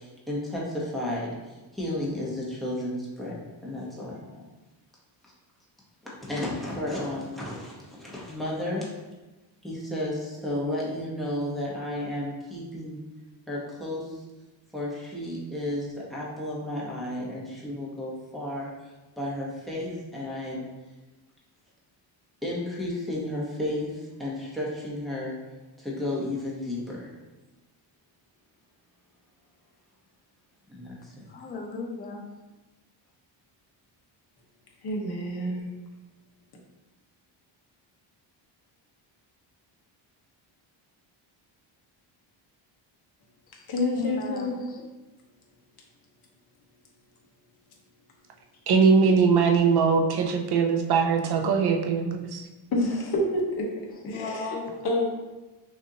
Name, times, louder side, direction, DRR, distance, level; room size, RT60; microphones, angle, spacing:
voice 1, 0.0-4.4 6.2-8.9 9.6-13.0 13.5-14.2 14.7-18.7 19.2-20.7 22.4-25.3 25.8-27.1 30.7-31.2, left 1 dB, ahead, -7 dB, 0.9 m, -33 dB
voice 2, 31.3-32.2 43.5-43.6 44.0-44.9 54.1-54.9, left 4 dB, 20° left, 2 dB, 0.3 m, -35 dB
voice 3, 34.8-35.7 43.7-44.6 52.7-53.7 54.0-55.0, left 1 dB, 50° left, -2 dB, 1.0 m, -28 dB
voice 4, 48.7-52.4, right 5 dB, 55° right, 3 dB, 0.6 m, -21 dB
6.1 x 2.6 x 2.8 m, 1.1 s
cardioid pair, 165°, 47 cm